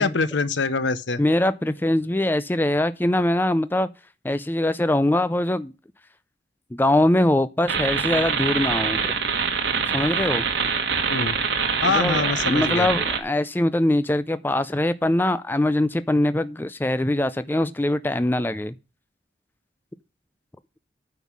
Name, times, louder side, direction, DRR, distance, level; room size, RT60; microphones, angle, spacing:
voice 1, 0.0-1.2 11.1-11.4 11.8-12.9, left 4 dB, 90° left, 0.8 m, -24 dB
voice 2, 1.2-3.9 4.2-5.7 6.7-9.1 9.9-10.4 11.9-18.7, left 1 dB, 10° left, 0.4 m, -22 dB
sound 1, 7.7-13.2, right 6 dB, 85° right, 1.6 m, -24 dB
9.3 x 5.6 x 6.1 m
head